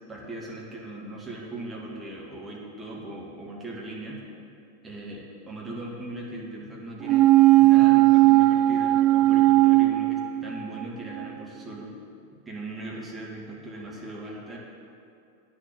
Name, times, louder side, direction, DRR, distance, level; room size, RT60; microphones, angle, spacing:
voice 1, 0.1-4.2 4.8-11.9 12.5-14.6, right 2 dB, 10° right, -3 dB, 2.2 m, -39 dB
sound 1, 7.0-10.8 11.2-11.3, right 17 dB, 35° right, 0.3 m, -18 dB
9.1 x 6.7 x 7.8 m, 2.5 s
figure-of-eight pair, 90°, 0 cm